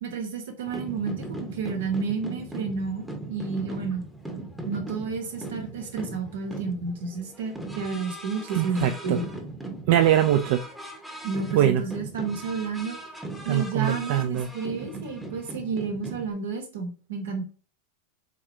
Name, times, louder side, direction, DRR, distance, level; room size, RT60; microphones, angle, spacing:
voice 1, 0.0-4.0 4.7-9.3 11.2-13.0 13.4-17.4, right 4 dB, 85° right, 1.1 m, -31 dB
sound 1, 0.7-16.3, right 2 dB, ahead, 0.7 m, -38 dB
voice 2, 8.6-9.2 9.9-10.6 11.5-11.8 13.5-14.5, right 11 dB, 65° right, 0.4 m, -22 dB
3.6 x 3.2 x 2.8 m
hypercardioid pair, 115°, 0 cm